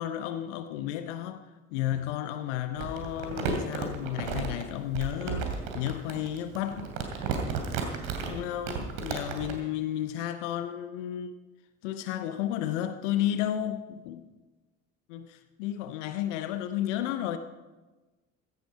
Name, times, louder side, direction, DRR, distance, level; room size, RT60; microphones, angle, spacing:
voice 1, 0.0-1.4 1.7-6.9 8.2-11.3 11.8-14.3 15.1-17.4, left 11 dB, 60° left, 1.0 m, -32 dB
Crumpling crinkling, 2.8-9.6, right 5 dB, 55° right, 2.7 m, -33 dB
16.5 x 15.0 x 4.7 m
figure-of-eight pair, 60°, 40 cm